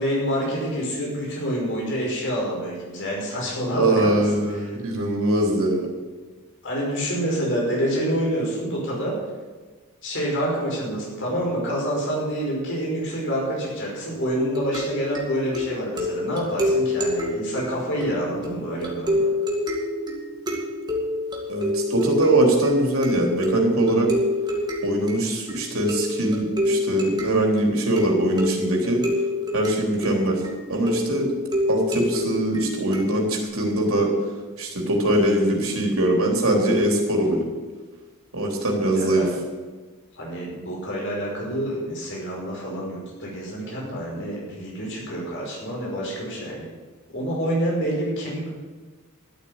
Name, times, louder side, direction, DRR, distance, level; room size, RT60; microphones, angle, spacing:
voice 1, 0.0-4.2 4.6-4.7 6.6-9.2 10.0-19.3 38.7-39.3 40.1-46.7 47.1-48.5, equal, 55° left, -3 dB, 5.4 m, -27 dB
voice 2, 3.7-5.9 21.5-24.1 24.8-29.0 29.5-30.4 30.7-31.3 31.7-34.1 34.6-37.4 38.3-39.3, right 1 dB, 70° right, 0 dB, 3.6 m, -22 dB
sound 1, 14.2-33.4, left 1 dB, 20° right, 2.2 m, -28 dB
12.5 x 8.2 x 8.8 m, 1.3 s
head